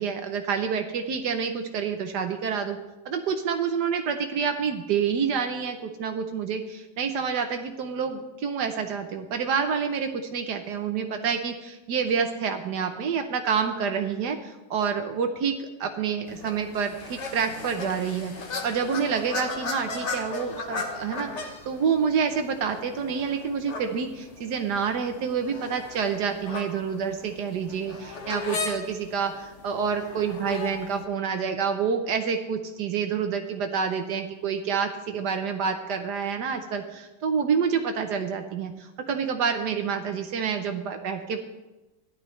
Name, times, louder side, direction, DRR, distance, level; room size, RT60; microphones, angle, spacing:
voice 1, 0.0-2.8 3.0-38.7 39.1-41.4, right 6 dB, 75° right, 6 dB, 1.4 m, -28 dB
sound 1, 16.3-31.0, left 4 dB, 45° left, 1.4 m, -37 dB
15.5 x 11.0 x 3.2 m, 1.0 s
omnidirectional pair, 1.8 m